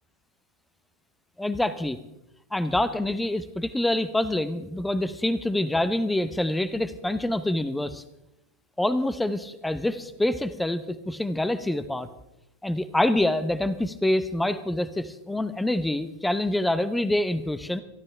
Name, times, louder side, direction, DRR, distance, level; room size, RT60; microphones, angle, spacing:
voice 1, 1.4-2.0 2.5-8.0 8.8-12.1 12.6-17.8, left 1 dB, 5° left, 14 dB, 0.8 m, -26 dB
23.5 x 13.0 x 3.3 m, 0.89 s
figure-of-eight pair, 90°, 0 cm